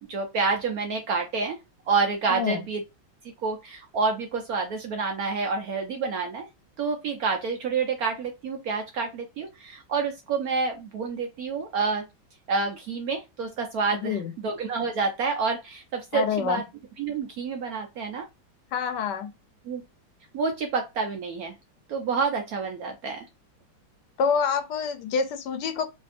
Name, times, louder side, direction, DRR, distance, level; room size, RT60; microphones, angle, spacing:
voice 1, 0.1-1.6 1.9-2.8 3.4-6.5 6.8-12.0 12.5-16.6 17.0-18.3 19.7-19.8 20.3-21.5 21.9-23.2, right 4 dB, 70° right, 0.8 m, -28 dB
voice 2, 2.3-2.6 13.9-14.3 16.1-16.6 18.7-19.3 24.2-25.9, left 6 dB, 70° left, 1.2 m, -27 dB
3.3 x 2.7 x 2.4 m
omnidirectional pair, 2.1 m